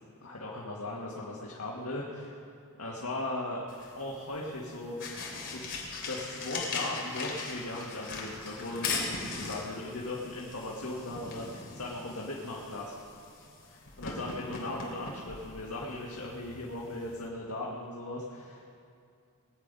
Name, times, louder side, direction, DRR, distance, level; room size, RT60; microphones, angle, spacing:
voice 1, 0.0-2.4 2.8-3.6 4.0-13.0 13.7-18.8, left 2 dB, 80° left, -3 dB, 1.7 m, -38 dB
sound 1, 3.7-17.3, left 4 dB, 55° left, 3.0 m, -40 dB
21.5 x 8.9 x 5.4 m, 2.4 s
head